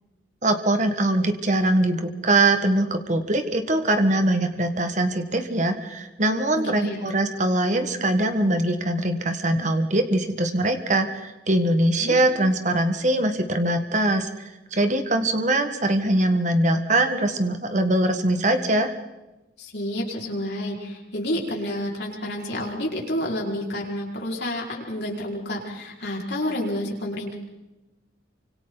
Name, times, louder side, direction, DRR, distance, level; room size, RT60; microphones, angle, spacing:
voice 1, 0.4-18.9, right 1 dB, 40° right, 7 dB, 1.6 m, -22 dB
voice 2, 6.5-7.0 12.0-12.2 19.6-27.4, left 1 dB, 60° left, -2 dB, 5.2 m, -29 dB
28.5 x 25.5 x 4.1 m, 1.0 s
head